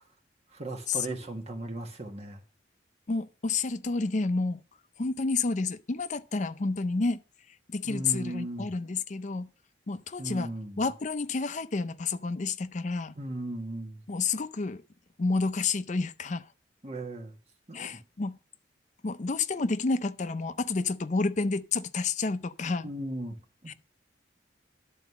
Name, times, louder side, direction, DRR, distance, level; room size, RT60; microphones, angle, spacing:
voice 1, 0.5-2.4 7.8-8.7 10.2-10.8 13.1-14.0 16.8-17.4 17.7-18.0 22.8-23.3 23.6-23.7, right 1 dB, 35° right, 1.6 m, -37 dB
voice 2, 3.1-4.6 5.0-7.2 7.7-9.5 9.9-10.5 10.8-13.1 14.1-14.8 15.2-16.4 17.7-18.4 19.0-22.9 23.7-23.8, left 3 dB, 40° left, 0.5 m, -30 dB
11.0 x 4.2 x 6.8 m
head